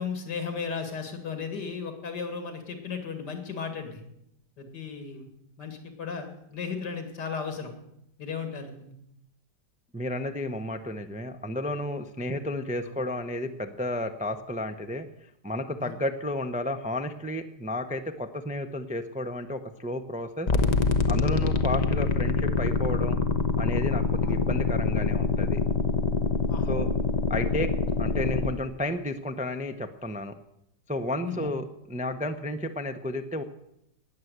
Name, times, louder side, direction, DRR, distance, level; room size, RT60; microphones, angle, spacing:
voice 1, 0.0-4.0 4.6-5.3 5.6-7.7 8.2-8.9 12.2-12.3 15.8-15.9 21.4-21.5 24.2-24.5 26.5-26.7 31.2-31.5, left 5 dB, 80° left, 6 dB, 2.9 m, -35 dB
voice 2, 9.9-15.1 15.4-20.5 21.1-23.2 23.6-25.6 26.7-26.9 27.3-27.7 28.0-30.3 30.9-33.4, left 1 dB, 10° right, 7 dB, 0.4 m, -32 dB
sound 1, 20.5-28.5, left 4 dB, 30° left, 0.8 m, -25 dB
19.0 x 7.5 x 8.0 m, 0.79 s
omnidirectional pair, 1.8 m